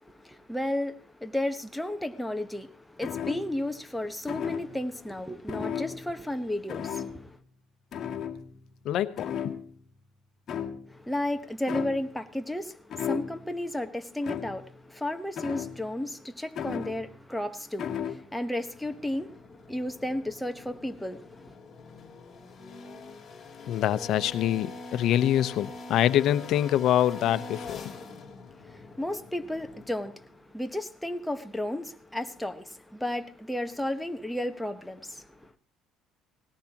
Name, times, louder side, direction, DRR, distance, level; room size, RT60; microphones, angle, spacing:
voice 1, 0.1-7.2 10.9-21.5 28.6-35.5, left 1 dB, 5° left, 1.1 m, -33 dB
sound 1, 3.0-3.7 4.3-4.9 5.5-6.4 6.7-7.4 7.9-8.8 9.2-9.9 10.5-11.1 11.7-12.2 12.9-13.6 14.2-14.8 15.4-16.0 16.6-17.3 17.8-18.3, left 8 dB, 40° left, 2.0 m, -35 dB
voice 2, 8.8-9.6 23.7-27.8, left 11 dB, 60° left, 0.9 m, -25 dB
sound 2, 18.6-30.4, left 3 dB, 25° left, 4.0 m, -45 dB
19.5 x 17.5 x 3.0 m
cardioid pair, 130°, 0 cm